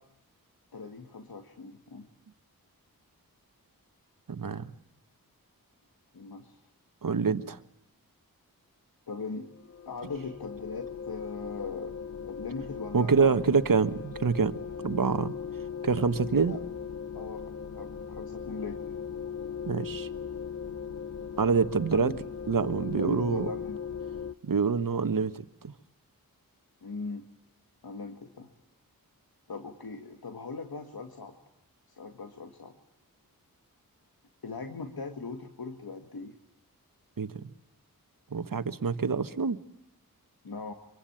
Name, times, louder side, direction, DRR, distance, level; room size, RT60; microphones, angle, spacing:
voice 1, 0.7-2.1 6.1-6.6 9.1-9.5 9.9-11.9 12.2-13.6 16.2-16.6 17.1-18.8 21.9-22.2 22.9-23.8 26.8-27.2 27.8-28.5 29.5-31.4 31.9-32.7 34.4-36.4 40.4-40.7, left 4 dB, 80° left, 5 dB, 2.1 m, -40 dB
voice 2, 4.3-4.7 7.0-7.6 12.9-14.6 14.8-15.3 15.8-16.5 19.7-20.1 21.4-22.1 22.5-23.5 24.4-25.7 37.2-37.3 38.3-39.6, right 5 dB, 65° right, 11 dB, 1.4 m, -26 dB
sound 1, 9.5-24.3, left 7 dB, 45° left, 1.0 m, -39 dB
25.5 x 23.5 x 8.8 m, 0.83 s
wide cardioid pair, 50°, 36 cm